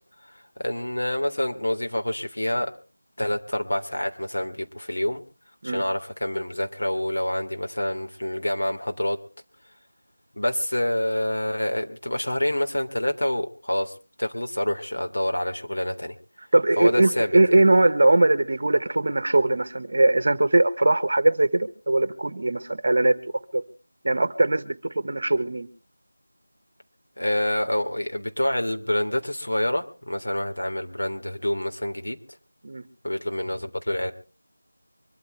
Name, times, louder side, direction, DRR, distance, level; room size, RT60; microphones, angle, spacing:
voice 1, 0.3-2.7 3.2-5.2 5.6-9.2 10.4-16.1 16.8-17.6 27.2-32.2 33.0-34.1, left 1 dB, 80° left, 5 dB, 3.2 m, -27 dB
voice 2, 16.5-23.1 23.5-23.6 24.0-25.7 32.6-32.8, right 2 dB, 40° right, 14 dB, 1.3 m, -20 dB
24.5 x 13.5 x 3.5 m, 0.36 s
figure-of-eight pair, 175°, 0 cm